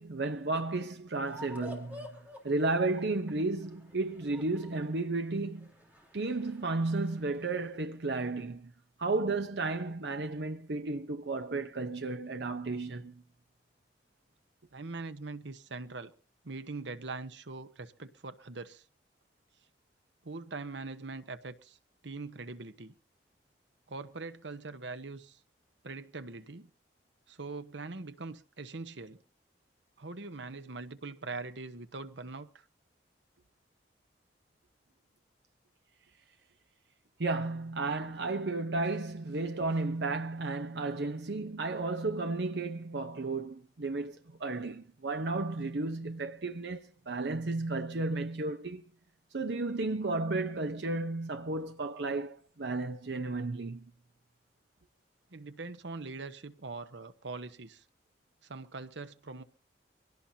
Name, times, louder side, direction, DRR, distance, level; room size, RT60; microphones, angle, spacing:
voice 1, 0.0-2.1 2.4-5.7 6.1-8.7 9.0-13.2 37.2-48.8 49.3-53.8, right 3 dB, 70° right, 0.8 m, -33 dB
sound 1, 1.3-7.7, left 1 dB, 10° right, 3.7 m, -51 dB
voice 2, 14.7-16.1 16.4-18.8 20.2-21.8 22.0-22.9 23.9-25.4 25.8-26.7 27.3-29.2 30.0-32.6 55.3-57.8 58.4-59.4, right 3 dB, 90° right, 1.1 m, -42 dB
24.0 x 17.5 x 2.8 m
head